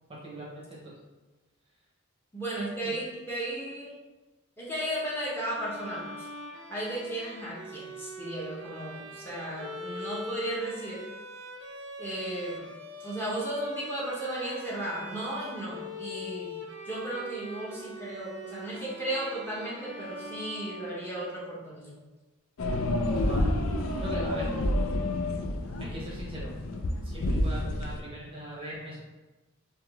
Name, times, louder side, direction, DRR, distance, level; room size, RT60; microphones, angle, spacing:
voice 1, 0.1-1.0 2.8-3.0 23.1-25.1 25.8-26.5 27.0-29.0, right 1 dB, 25° right, -5 dB, 0.7 m, -41 dB
voice 2, 2.3-3.9 4.6-6.3 6.7-11.0 12.0-12.7 13.0-16.6 16.8-22.0, right 1 dB, 10° left, -7 dB, 0.8 m, -35 dB
Bowed string instrument, 5.4-21.4, equal, 55° right, 0.5 m, -42 dB
sound 1, 22.6-28.0, left 1 dB, 70° left, 0.4 m, -29 dB
3.6 x 2.8 x 3.4 m, 1.2 s
head